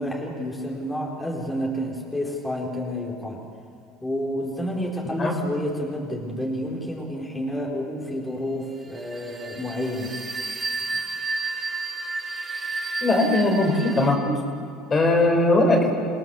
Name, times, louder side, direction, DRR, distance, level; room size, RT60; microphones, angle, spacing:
voice 1, 0.0-3.4 4.0-10.1, equal, 10° left, -2 dB, 4.7 m, -29 dB
sound 1, 8.8-14.2, right 3 dB, 20° right, 3.9 m, -31 dB
voice 2, 13.0-14.4 14.9-15.9, left 2 dB, 30° left, 2 dB, 5.0 m, -20 dB
29.0 x 17.0 x 7.2 m, 2.4 s
supercardioid pair, 90°, 0 cm